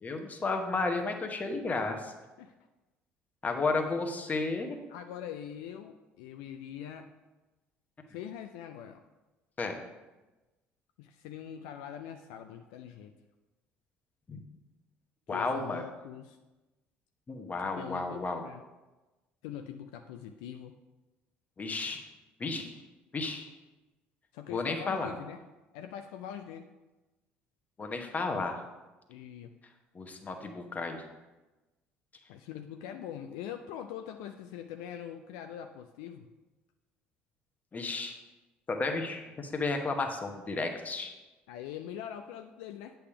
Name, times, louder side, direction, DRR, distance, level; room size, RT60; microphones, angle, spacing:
voice 1, 0.0-2.1 3.4-4.8 9.6-9.8 14.3-14.4 15.3-15.8 17.3-18.4 21.6-22.0 22.4-22.7 23.1-23.5 24.5-25.1 27.8-28.6 29.9-31.0 37.7-38.2 38.7-41.1, left 3 dB, 30° left, 4 dB, 1.0 m, -32 dB
voice 2, 4.9-7.1 8.1-9.0 11.0-13.1 15.3-16.4 17.8-18.6 19.4-20.8 24.3-25.4 25.7-26.7 29.1-29.5 32.3-36.3 41.5-42.9, left 9 dB, 70° left, 6 dB, 0.3 m, -43 dB
8.3 x 3.4 x 5.7 m, 1.1 s
hypercardioid pair, 60°, 6 cm